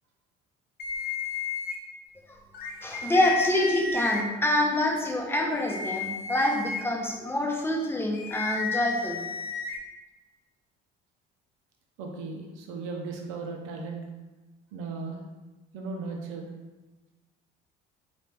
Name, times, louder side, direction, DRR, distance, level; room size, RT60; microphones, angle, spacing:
sound 1, 0.8-1.8 2.5-4.2 5.5-6.8 8.1-9.8, left 5 dB, 50° left, 0.6 m, -32 dB
voice 1, 2.8-9.3, left 1 dB, 10° left, 0 dB, 0.7 m, -26 dB
voice 2, 12.0-14.0 14.7-15.2 15.7-16.4, right 4 dB, 80° right, 1 dB, 0.7 m, -36 dB
4.3 x 2.6 x 3.3 m, 1.1 s
cardioid pair, 120°, 20 cm